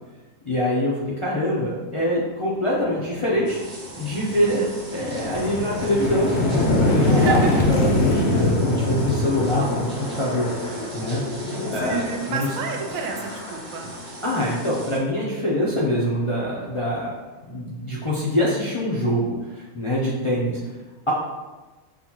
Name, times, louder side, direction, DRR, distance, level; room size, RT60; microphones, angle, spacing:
voice 1, 0.4-3.6 4.0-4.6 4.9-11.2 11.7-12.5 14.2-17.1 17.5-20.6, equal, 45° left, -7 dB, 0.4 m, -24 dB
sound 1, 3.3-3.5 3.9-14.7, left 2 dB, 60° left, 0.8 m, -24 dB
sound 2, 3.5-15.0, right 1 dB, 40° right, 0.6 m, -41 dB
voice 2, 4.4-4.7 7.1-7.6 11.8-13.9, right 4 dB, 85° right, 2 dB, 1.0 m, -30 dB
5.9 x 2.3 x 2.9 m, 1.2 s
omnidirectional pair, 1.4 m